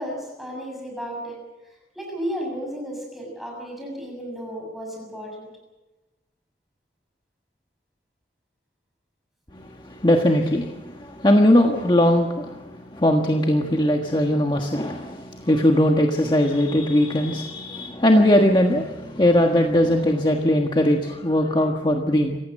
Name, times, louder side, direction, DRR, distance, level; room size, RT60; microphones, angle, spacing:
voice 1, 0.0-1.4 2.0-5.5, equal, ahead, -1 dB, 7.0 m, -33 dB
voice 2, 9.5-22.4, left 1 dB, 25° left, 2 dB, 1.4 m, -20 dB
27.0 x 15.5 x 7.6 m, 1.1 s
head